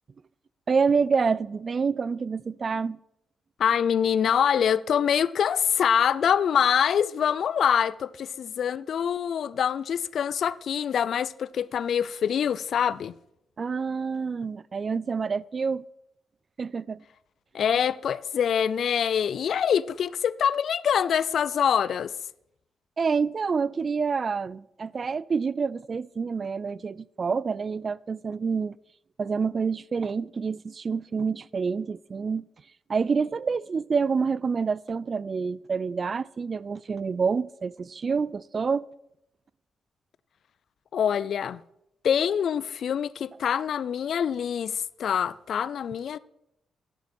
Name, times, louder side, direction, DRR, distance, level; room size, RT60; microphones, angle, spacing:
voice 1, 0.7-3.0 13.6-15.8 16.6-17.0 23.0-28.8 29.2-32.4 32.9-38.8, right 5 dB, 45° right, 0.3 m, -27 dB
voice 2, 3.6-13.1 17.5-22.1 40.9-41.6 42.0-46.2, left 8 dB, 70° left, 0.3 m, -25 dB
11.5 x 10.0 x 4.3 m
cardioid pair, 90°, 0 cm